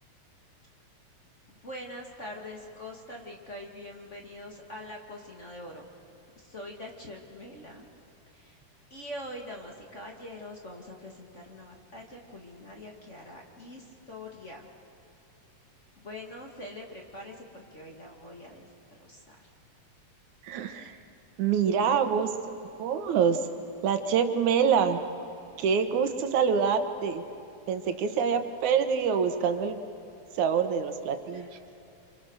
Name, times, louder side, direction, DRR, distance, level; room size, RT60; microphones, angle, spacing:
voice 1, 1.5-5.9 6.4-7.9 8.3-8.6 8.9-14.7 16.0-18.7 19.0-19.5 31.3-31.5, left 1 dB, 25° left, 0 dB, 2.1 m, -44 dB
voice 2, 20.5-20.9 21.4-22.3 22.8-23.4 23.8-25.0 25.6-27.2 27.7-29.8 30.4-31.5, right 7 dB, 80° right, 8 dB, 2.6 m, -25 dB
29.5 x 26.0 x 6.4 m, 2.7 s
omnidirectional pair, 3.3 m